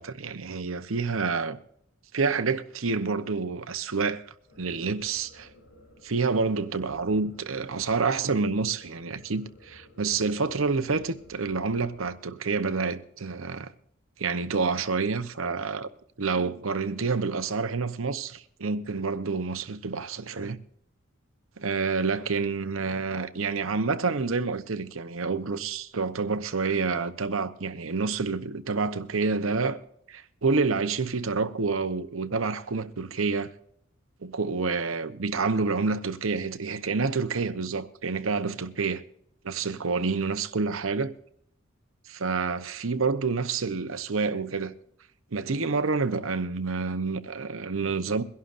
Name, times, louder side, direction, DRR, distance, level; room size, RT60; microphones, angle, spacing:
voice 1, 0.0-1.6 2.1-4.2 4.6-5.5 6.0-13.7 14.2-15.9 16.2-20.6 21.6-29.8 30.1-33.5 34.2-39.0 39.4-41.1 42.1-44.7 45.3-48.2, right 4 dB, 85° right, 0.9 m, -28 dB
sound 1, 4.5-12.1, left 1 dB, 85° left, 4.6 m, -55 dB
23.0 x 11.5 x 2.6 m
head